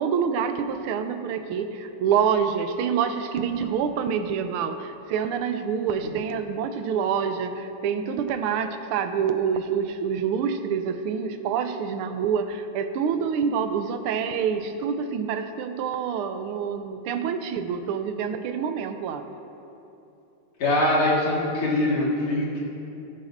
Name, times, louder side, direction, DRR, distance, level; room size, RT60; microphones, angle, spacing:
voice 1, 0.0-19.2, right 7 dB, 85° right, 9 dB, 1.5 m, -27 dB
voice 2, 20.6-22.6, left 1 dB, 70° left, -5 dB, 2.7 m, -23 dB
18.5 x 8.3 x 2.6 m, 2.9 s
omnidirectional pair, 2.4 m